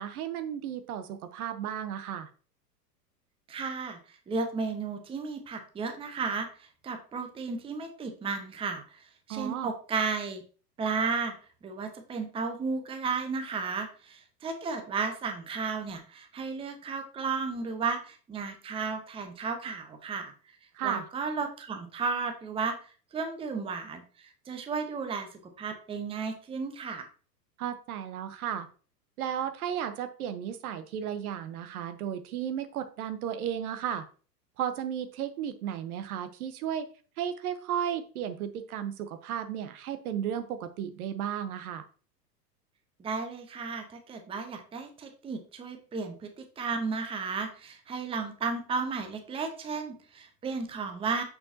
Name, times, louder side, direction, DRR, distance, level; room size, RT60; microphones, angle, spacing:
voice 1, 0.0-2.3 9.3-9.7 20.7-21.0 27.6-28.7 29.2-34.0 34.6-36.9 37.2-41.8, right 9 dB, 60° right, 10 dB, 0.9 m, -34 dB
voice 2, 3.5-4.0 4.3-10.4 10.8-11.4 11.6-20.3 20.8-22.8 23.1-25.3 25.6-27.0 43.0-51.2, right 4 dB, 10° right, 6 dB, 0.7 m, -34 dB
6.3 x 5.6 x 2.7 m, 0.38 s
hypercardioid pair, 100°, 50 cm